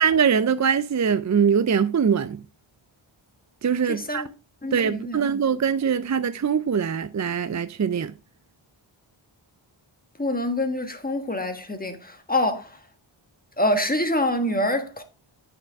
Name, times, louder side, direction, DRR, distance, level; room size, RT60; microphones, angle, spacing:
voice 1, 0.0-2.4 3.6-4.2 4.7-8.1, right 7 dB, 40° right, 0.4 m, -22 dB
voice 2, 3.9-4.3 4.6-5.2 10.2-12.8 13.6-15.0, left 1 dB, 20° left, 1.5 m, -26 dB
8.7 x 6.5 x 3.5 m
wide cardioid pair, 75°, 49 cm